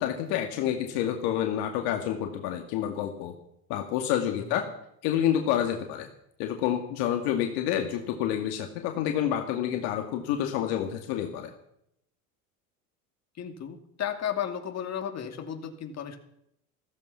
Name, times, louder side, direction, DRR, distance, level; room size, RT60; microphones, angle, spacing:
voice 1, 0.0-3.3 3.7-4.6 5.0-6.1 6.4-11.5, left 10 dB, 60° left, 4 dB, 2.1 m, -28 dB
voice 2, 13.4-16.2, left 9 dB, 40° left, 4 dB, 2.6 m, -34 dB
15.0 x 14.5 x 5.7 m, 0.76 s
hypercardioid pair, 80°, 43 cm